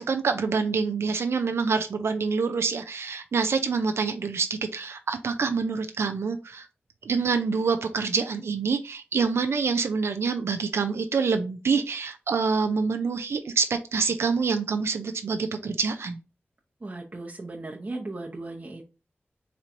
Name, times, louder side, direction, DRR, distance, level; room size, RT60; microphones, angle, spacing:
voice 1, 0.0-6.7 7.0-16.2, right 5 dB, 85° right, 7 dB, 0.4 m, -26 dB
voice 2, 16.8-18.9, right 2 dB, 40° right, -1 dB, 0.7 m, -37 dB
4.3 x 3.0 x 2.5 m, 0.31 s
wide cardioid pair, 60°, 4 cm